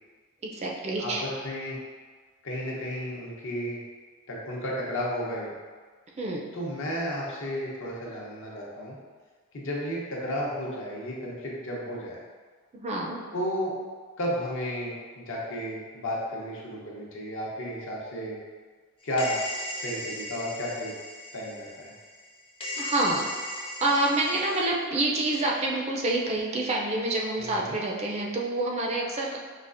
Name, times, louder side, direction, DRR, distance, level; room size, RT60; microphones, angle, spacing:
voice 1, 0.4-1.2 6.2-6.4 12.7-13.2 22.8-29.4, right 2 dB, 30° right, -1 dB, 0.4 m, -27 dB
voice 2, 1.0-1.8 2.4-3.8 4.3-5.5 6.5-9.0 9.5-12.2 13.3-13.7 14.2-18.4 19.0-19.4 19.8-20.9 21.3-21.9 27.4-27.8, equal, 65° left, -4 dB, 0.8 m, -33 dB
sound 1, 19.2-22.3 22.6-24.6, left 1 dB, 25° left, 0.5 m, -37 dB
4.9 x 2.4 x 2.5 m, 1.5 s
head